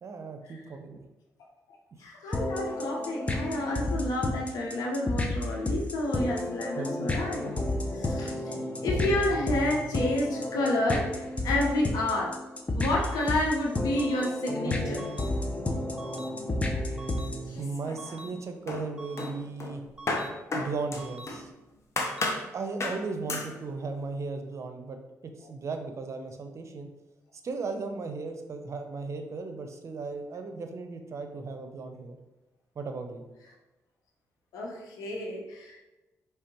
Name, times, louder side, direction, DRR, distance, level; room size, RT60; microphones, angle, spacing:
voice 1, 0.0-1.0 6.7-7.1 8.2-8.6 14.6-15.1 17.6-19.8 20.5-21.5 22.5-26.9 27.4-32.2 32.8-33.2, right 4 dB, 50° right, 6 dB, 0.7 m, -36 dB
voice 2, 2.0-7.5 7.9-8.5 8.8-12.4 12.7-15.0 17.5-17.6 34.5-35.8, left 1 dB, 80° left, -2 dB, 1.1 m, -30 dB
sound 1, 2.3-17.6, left 1 dB, 20° left, 0.7 m, -31 dB
sound 2, 13.0-13.3 14.0-14.3 15.0-15.3 16.0-16.3 17.0-17.3 18.0-18.3 19.0-19.3 20.0-20.3 21.0-21.3 22.0-22.3, right 3 dB, 15° right, 0.8 m, -45 dB
sound 3, 17.6-18.3 18.7-21.5 22.0-22.5 22.8-23.0 23.3-23.5, left 2 dB, 50° left, 1.0 m, -33 dB
4.8 x 3.3 x 3.0 m, 1.0 s
supercardioid pair, 60°, 6 cm